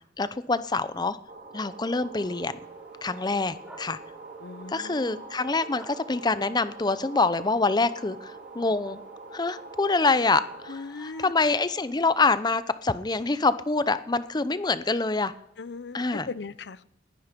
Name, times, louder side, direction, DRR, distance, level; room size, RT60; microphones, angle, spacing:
voice 1, 0.2-1.2 1.5-2.6 3.0-4.0 4.7-9.0 9.3-15.3 15.9-16.3, left 3 dB, 25° left, 14 dB, 0.6 m, -26 dB
sound 1, 1.3-10.7, right 3 dB, 50° right, 2.0 m, -44 dB
sound 2, 2.2-12.2, right 1 dB, 10° right, 2.9 m, -55 dB
voice 2, 4.4-5.2 10.7-11.3 15.6-16.8, left 4 dB, 75° left, 18 dB, 0.6 m, -39 dB
19.0 x 14.0 x 5.2 m, 0.80 s
head